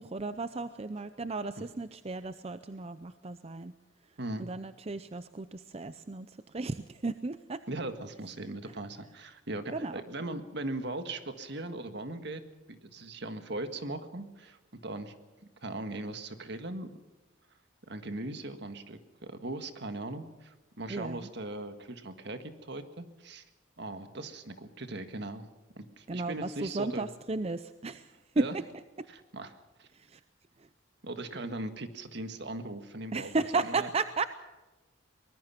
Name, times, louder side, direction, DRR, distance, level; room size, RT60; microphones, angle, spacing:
voice 1, 0.0-3.7 4.4-7.6 8.5-8.6 9.7-10.0 20.9-21.3 26.1-28.1 28.4-28.5 29.9-30.2 33.1-34.2, right 3 dB, 30° right, 12 dB, 0.6 m, -34 dB
voice 2, 4.2-4.5 7.7-12.4 12.7-14.6 14.8-15.1 15.6-16.9 17.9-23.4 23.8-25.5 25.7-27.1 28.3-28.6 29.1-29.9 31.0-33.3 33.6-33.9, right 2 dB, 60° right, 8 dB, 1.7 m, -39 dB
23.5 x 20.0 x 5.9 m, 1.1 s
head